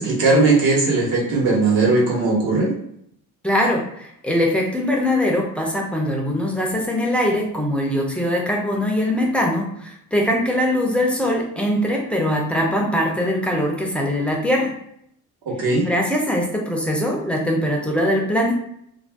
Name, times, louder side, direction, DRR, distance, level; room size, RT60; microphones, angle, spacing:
voice 1, 0.0-2.7 15.5-15.9, right 3 dB, 70° right, -3 dB, 1.2 m, -18 dB
voice 2, 3.4-14.8 15.9-18.5, left 1 dB, 5° left, -1 dB, 0.4 m, -22 dB
2.5 x 2.2 x 3.3 m, 0.73 s
cardioid pair, 145°, 36 cm